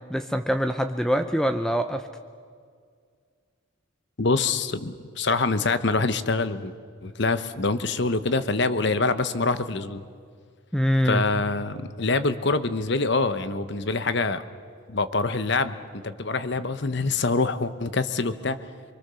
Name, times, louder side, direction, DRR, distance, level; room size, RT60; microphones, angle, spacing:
voice 1, 0.1-2.1 10.7-11.2, equal, 5° left, 8 dB, 0.6 m, -24 dB
voice 2, 4.2-6.7 7.0-10.1 11.0-14.4 14.9-18.6, left 3 dB, 55° left, 12 dB, 1.0 m, -25 dB
25.0 x 23.5 x 6.9 m, 2.1 s
head